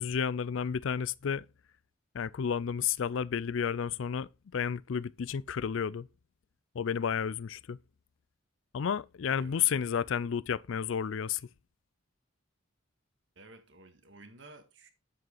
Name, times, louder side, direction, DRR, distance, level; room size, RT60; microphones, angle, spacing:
voice 1, 0.0-1.5 2.1-6.1 6.7-7.8 8.7-11.4, left 7 dB, 70° left, 0.4 m, -31 dB
voice 2, 13.4-14.9, right 2 dB, 60° right, 1.8 m, -53 dB
9.2 x 7.7 x 3.9 m
head